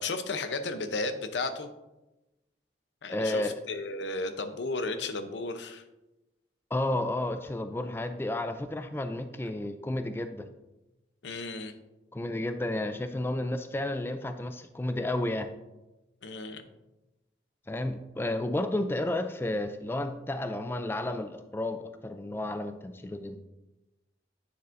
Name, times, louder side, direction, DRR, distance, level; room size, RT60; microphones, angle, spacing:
voice 1, 0.0-1.7 3.0-5.8 11.2-11.7 16.2-16.6, left 3 dB, 90° left, 9 dB, 0.7 m, -34 dB
voice 2, 3.1-3.6 6.7-10.5 12.1-15.5 17.7-23.4, left 1 dB, 15° left, 8 dB, 0.3 m, -32 dB
9.5 x 7.0 x 2.6 m, 1.0 s
head